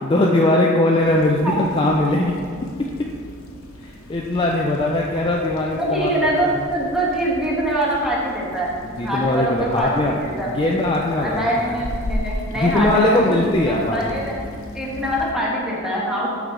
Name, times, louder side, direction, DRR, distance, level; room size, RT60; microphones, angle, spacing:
voice 1, 0.0-2.4 2.8-3.1 3.8-6.1 8.8-10.2 10.6-11.8 12.5-14.2, left 1 dB, 25° left, -1 dB, 0.4 m, -20 dB
sound 1, 1.0-15.3, left 1 dB, 75° left, 0.8 m, -36 dB
voice 2, 5.7-8.8 9.0-10.5 11.1-14.3 14.7-16.3, right 1 dB, ahead, -6 dB, 1.4 m, -23 dB
6.6 x 6.1 x 3.8 m, 2.1 s
head